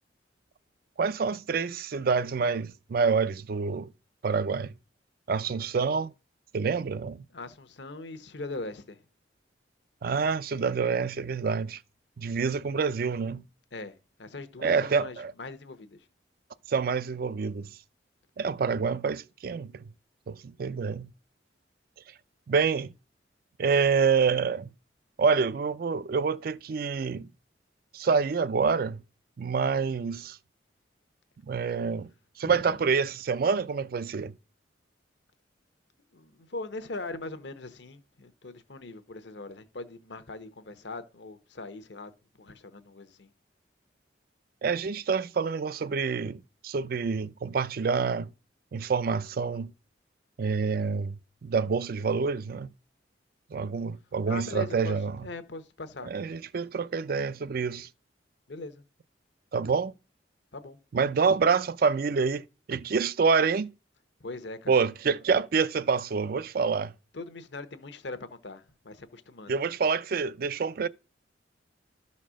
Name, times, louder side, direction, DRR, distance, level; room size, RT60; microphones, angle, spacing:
voice 1, 1.0-3.9 4.2-4.7 5.3-6.1 6.5-7.2 10.0-11.8 12.2-13.4 14.6-15.3 16.7-17.7 18.4-19.8 20.3-21.1 22.5-22.9 23.6-24.7 25.2-27.3 27.9-29.0 29.4-30.4 31.5-32.1 32.4-34.3 44.6-48.3 48.7-49.7 50.4-52.7 53.5-55.3 56.1-57.9 59.5-59.9 60.9-63.7 64.7-66.9 69.5-70.9, right 5 dB, 50° right, 0.4 m, -27 dB
voice 2, 7.3-9.0 13.7-16.0 32.5-32.7 36.1-42.1 42.4-43.3 54.3-55.0 55.2-56.1 58.5-58.8 60.5-60.8 64.2-64.8 67.1-69.6, left 3 dB, 70° left, 0.9 m, -41 dB
12.0 x 4.2 x 6.2 m
head